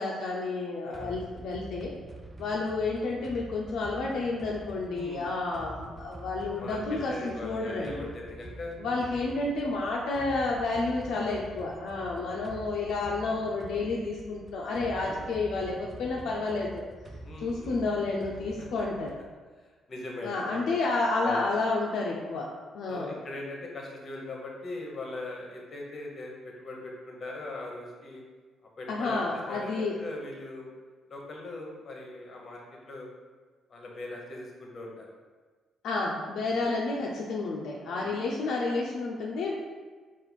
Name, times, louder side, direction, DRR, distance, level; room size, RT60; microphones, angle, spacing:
voice 1, 0.0-1.9 2.4-8.1 8.8-16.8 17.4-19.1 20.2-22.5 22.7-23.1 28.9-30.0 35.8-39.5, left 3 dB, 75° left, -3 dB, 0.5 m, -30 dB
voice 2, 0.8-1.2 4.9-5.3 6.6-8.7 9.2-9.3 15.0-15.2 17.2-17.8 19.6-20.8 21.2-21.5 22.9-28.2 28.8-30.7 31.1-33.1 33.7-35.1 36.5-36.6 37.9-38.3, left 2 dB, 45° left, -1 dB, 1.0 m, -40 dB
sound 1, 0.9-19.3, right 2 dB, 20° right, 0.4 m, -46 dB
4.3 x 2.5 x 4.0 m, 1.4 s
cardioid pair, 90°, 0 cm